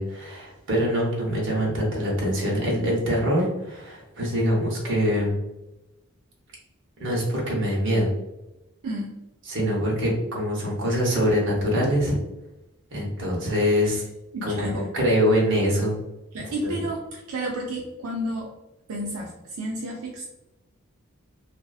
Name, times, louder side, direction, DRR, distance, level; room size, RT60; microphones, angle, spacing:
voice 1, 0.0-5.4 7.0-8.1 9.5-12.2 12.9-14.0 14.4-16.0 16.6-16.7, equal, 55° right, -3 dB, 0.9 m, -24 dB
voice 2, 8.8-9.2 13.8-14.0 14.3-14.9 16.3-18.5 18.9-20.2, right 1 dB, 85° right, -1 dB, 0.4 m, -31 dB
2.5 x 2.4 x 2.3 m, 0.95 s
head